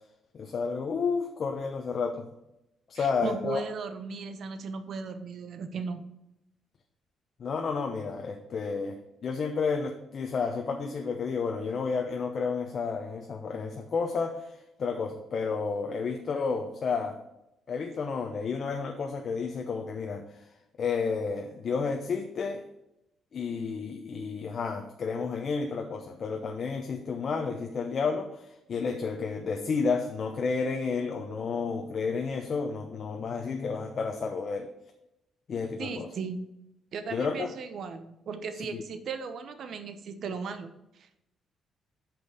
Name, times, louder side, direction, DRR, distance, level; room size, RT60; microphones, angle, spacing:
voice 1, 0.3-2.3 2.9-3.6 7.4-17.2 17.7-20.5 20.8-22.6 23.3-34.7 35.5-36.1 37.1-37.5 38.7-38.8, left 5 dB, 50° left, 4 dB, 0.8 m, -31 dB
voice 2, 2.9-6.0 35.8-36.5 36.9-41.2, right 5 dB, 65° right, 10 dB, 0.9 m, -37 dB
6.0 x 5.3 x 6.4 m, 0.88 s
cardioid pair, 90°, 0 cm